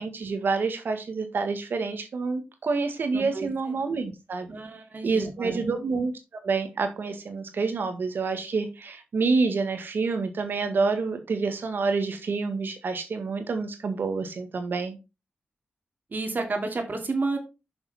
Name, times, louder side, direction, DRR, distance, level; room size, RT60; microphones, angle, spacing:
voice 1, 0.0-4.5 5.0-6.1 6.4-15.0, right 4 dB, 75° right, 7 dB, 1.7 m, -28 dB
voice 2, 3.1-3.8 4.5-5.6 16.1-17.4, right 3 dB, 60° right, 4 dB, 2.6 m, -31 dB
6.9 x 6.0 x 4.2 m, 0.27 s
cardioid pair, 55°, 4 cm